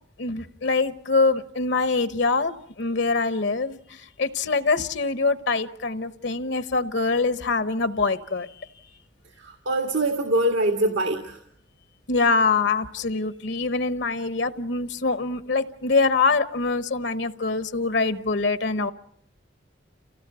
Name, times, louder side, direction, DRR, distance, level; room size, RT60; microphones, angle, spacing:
voice 1, 0.2-8.5 12.1-18.9, left 4 dB, 70° left, 11 dB, 1.0 m, -24 dB
voice 2, 9.4-11.4, right 1 dB, 80° right, 4 dB, 2.0 m, -24 dB
28.5 x 17.5 x 6.9 m, 0.71 s
head